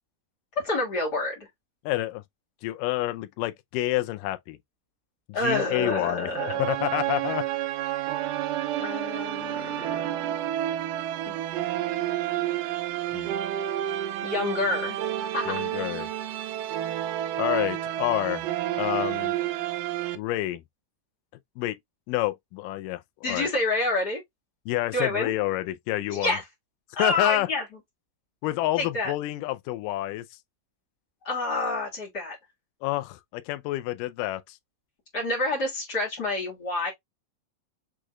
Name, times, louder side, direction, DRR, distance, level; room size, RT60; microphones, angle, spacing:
voice 1, 0.6-1.5 5.3-6.6 8.8-10.2 11.3-11.4 14.2-15.0 15.3-15.6 23.2-24.2 24.9-25.3 26.1-26.4 26.9-27.6 28.8-29.1 31.2-32.4 35.1-36.9, left 2 dB, 35° left, 1.9 m, -28 dB
voice 2, 1.9-2.2 2.6-4.6 5.4-7.4 13.1-13.4 15.5-16.1 17.4-18.4 18.8-19.4 20.2-20.6 21.6-21.8 22.1-23.0 23.3-23.5 24.7-26.4 27.0-27.5 28.4-30.3 32.8-34.6, left 16 dB, 80° left, 2.0 m, -28 dB
sound 1, 6.3-20.2, right 12 dB, 75° right, 2.0 m, -30 dB
6.4 x 3.0 x 2.3 m
omnidirectional pair, 4.2 m